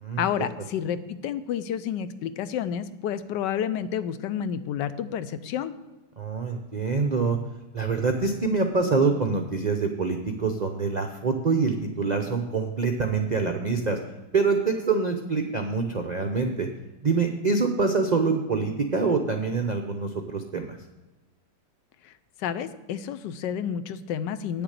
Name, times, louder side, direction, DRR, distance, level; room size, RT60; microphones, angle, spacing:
voice 1, 0.2-5.7 22.0-22.1 22.4-24.6, left 9 dB, 90° left, 13 dB, 1.3 m, -30 dB
voice 2, 6.2-7.4 7.7-14.0 14.3-16.7 17.0-20.8, right 4 dB, 65° right, 5 dB, 0.4 m, -25 dB
8.9 x 6.9 x 6.5 m, 1.1 s
omnidirectional pair, 1.8 m